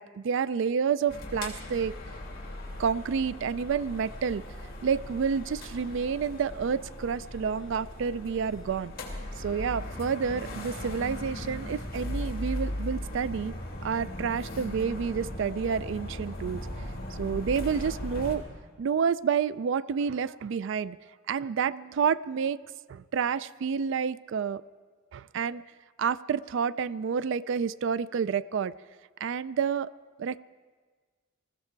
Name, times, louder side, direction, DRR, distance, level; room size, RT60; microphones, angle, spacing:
voice 1, 0.0-1.9 2.8-4.4 4.8-8.9 9.4-13.5 13.8-16.7 17.2-18.4 18.8-21.0 21.3-22.6 22.9-24.6 25.1-25.6 26.0-28.7 29.2-29.9 30.2-30.4, right 6 dB, 65° right, 18 dB, 0.3 m, -29 dB
sound 1, 1.1-18.3, left 1 dB, 50° left, 2.8 m, -38 dB
20.5 x 14.5 x 4.5 m, 1.5 s
head